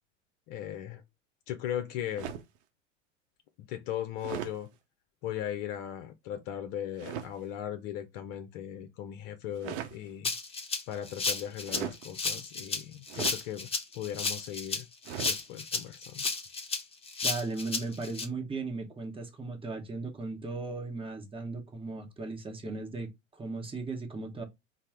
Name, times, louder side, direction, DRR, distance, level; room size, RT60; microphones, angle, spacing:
voice 1, 0.5-1.0 1.5-2.3 3.6-4.7 5.2-10.3 10.9-13.7 13.9-14.9 15.2-16.3, left 11 dB, 50° left, 0.5 m, -38 dB
sound 1, 2.2-2.6 4.2-4.6 7.0-7.3 9.5-10.0 11.6-12.0 13.1-13.4 15.1-15.4, right 9 dB, 65° right, 0.7 m, -38 dB
Rattle (instrument), 10.2-18.2, left 4 dB, 15° left, 0.7 m, -33 dB
voice 2, 17.2-24.4, right 3 dB, 15° right, 0.9 m, -37 dB
4.2 x 2.0 x 3.4 m
hypercardioid pair, 85°, 37 cm